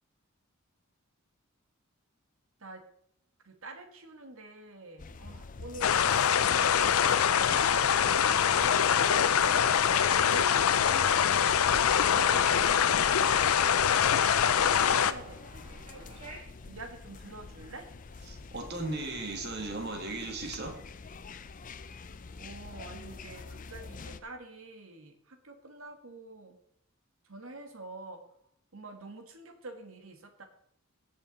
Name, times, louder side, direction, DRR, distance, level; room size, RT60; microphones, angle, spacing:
voice 1, 3.4-6.0 6.5-9.8 10.2-14.1 14.5-16.2 16.6-17.9 22.4-26.6 27.2-28.2 28.7-30.4, right 2 dB, 70° right, 6 dB, 1.5 m, -47 dB
sound 1, 5.0-24.2, left 4 dB, 40° left, 0.5 m, -46 dB
sound 2, 5.8-15.1, left 8 dB, 90° left, 0.5 m, -24 dB
sound 3, 8.3-16.4, right 2 dB, 30° right, 2.5 m, -49 dB
voice 2, 18.3-20.8, right 2 dB, 50° right, 3 dB, 1.9 m, -36 dB
16.5 x 6.1 x 3.9 m, 0.70 s
head